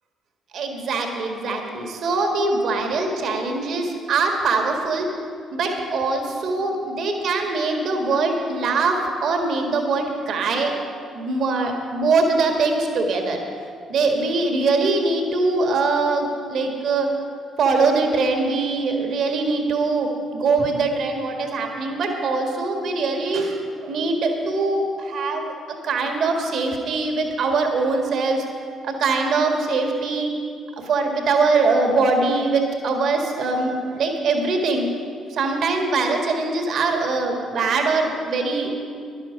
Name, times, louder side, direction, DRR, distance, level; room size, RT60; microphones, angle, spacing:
voice 1, 0.5-5.1 5.5-10.7 11.1-13.4 13.9-17.1 17.6-25.5 25.8-28.4 28.8-30.3 30.8-34.9 35.3-38.7, right 3 dB, 60° right, 3 dB, 1.7 m, -22 dB
13.0 x 11.5 x 5.1 m, 2.3 s
hypercardioid pair, 45°, 0 cm